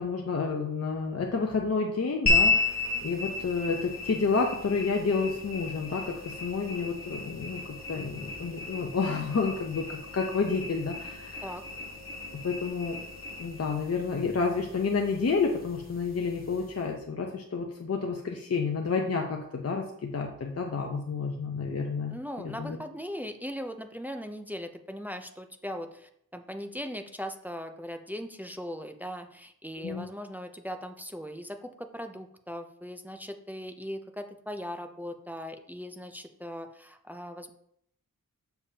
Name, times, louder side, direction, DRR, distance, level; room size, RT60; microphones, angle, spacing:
voice 1, 0.0-11.4 12.3-13.0 13.4-22.8 29.8-30.0, left 4 dB, 45° left, 1 dB, 0.8 m, -30 dB
sound 1, 2.3-16.9, left 4 dB, 25° left, 2.0 m, -33 dB
voice 2, 22.1-37.5, equal, 5° right, 6 dB, 0.6 m, -39 dB
7.0 x 6.9 x 2.8 m, 0.71 s
wide cardioid pair, 95°, 35 cm